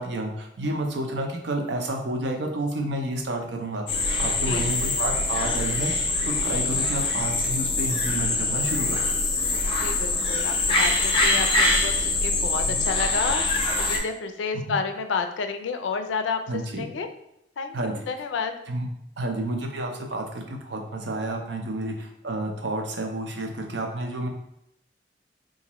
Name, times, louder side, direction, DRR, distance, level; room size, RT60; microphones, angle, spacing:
voice 1, 0.0-3.9 4.2-5.9 6.2-9.0 12.6-12.8 14.7-14.8 16.5-16.8 17.7-17.9 18.7-18.9 19.2-24.3, right 1 dB, 70° right, 2 dB, 0.6 m, -30 dB
sound 1, 3.9-14.0, left 2 dB, 30° left, 0.6 m, -24 dB
voice 2, 9.8-13.5 13.8-16.4 16.7-17.1 17.6-18.5, left 5 dB, 85° left, 7 dB, 0.4 m, -30 dB
3.9 x 2.5 x 2.9 m, 0.80 s
head